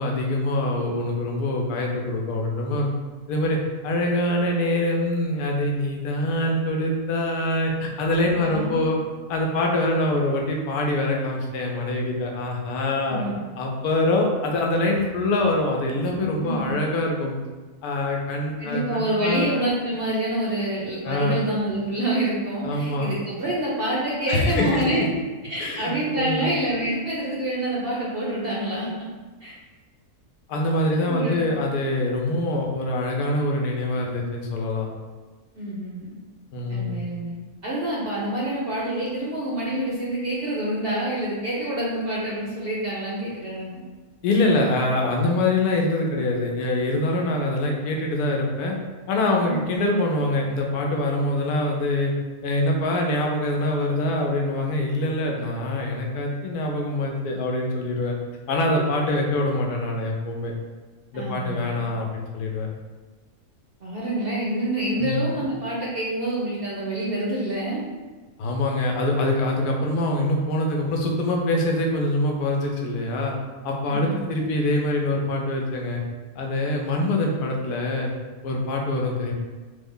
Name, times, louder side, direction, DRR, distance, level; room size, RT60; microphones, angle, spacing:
voice 1, 0.0-2.9 3.3-3.6 3.8-9.0 9.3-13.3 13.6-17.4 17.8-19.5 21.0-21.4 22.6-23.1 24.3-24.8 25.6-26.5 30.5-34.9 36.5-37.0 44.2-48.8 49.1-52.1 52.4-58.2 58.5-60.5 61.1-62.7 65.0-65.4 68.4-73.3 73.6-76.0 76.4-78.1 78.4-79.3, left 1 dB, 85° left, 0 dB, 1.2 m, -24 dB
voice 2, 8.2-8.8 13.1-13.4 16.4-16.7 18.6-25.0 25.4-29.1 29.4-29.5 31.1-31.4 35.5-36.2 36.7-37.3 37.6-43.8 49.4-49.6 61.1-61.8 63.8-67.8 73.9-74.2, right 1 dB, 55° right, -6 dB, 0.6 m, -27 dB
3.3 x 2.1 x 3.6 m, 1.3 s
omnidirectional pair, 1.6 m